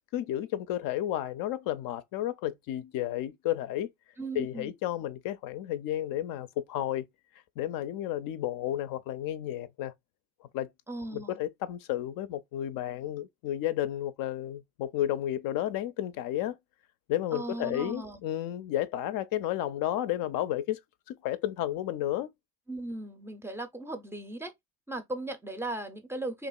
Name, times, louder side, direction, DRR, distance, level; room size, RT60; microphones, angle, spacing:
voice 1, 0.1-3.9 4.4-7.1 7.6-9.9 10.5-10.7 11.1-16.6 17.1-20.8 21.1-22.3, left 12 dB, 60° left, 0.5 m, -32 dB
voice 2, 4.2-4.7 10.9-11.4 17.3-18.2 22.7-24.5 24.9-26.5, right 2 dB, 5° right, 0.5 m, -37 dB
2.9 x 2.4 x 2.2 m
supercardioid pair, 80°, 39 cm